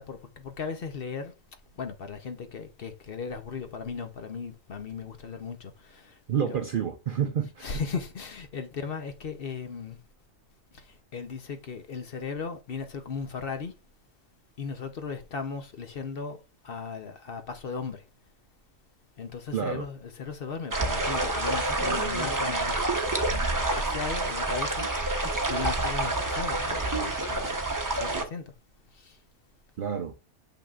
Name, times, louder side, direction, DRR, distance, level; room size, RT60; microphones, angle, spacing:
voice 1, 0.0-1.3 1.8-6.2 6.5-6.6 7.6-10.0 10.7-13.7 14.6-16.4 16.6-18.0 19.2-22.8 23.1-25.1 25.5-27.6 28.0-28.4 28.9-29.2, left 5 dB, 55° left, 1.0 m, -37 dB
voice 2, 6.3-7.8 19.5-19.8 29.8-30.1, right 8 dB, 55° right, 0.7 m, -29 dB
sound 1, 20.7-28.2, right 2 dB, 20° right, 0.7 m, -28 dB
6.9 x 5.7 x 2.4 m
omnidirectional pair, 1.2 m